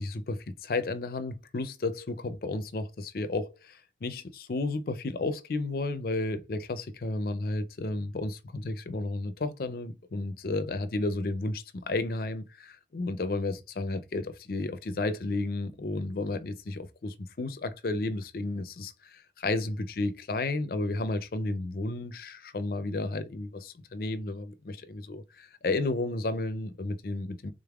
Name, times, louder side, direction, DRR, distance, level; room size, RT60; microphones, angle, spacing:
voice 1, 0.0-27.5, left 2 dB, 55° left, 0.5 m, -32 dB
3.7 x 3.4 x 2.3 m
head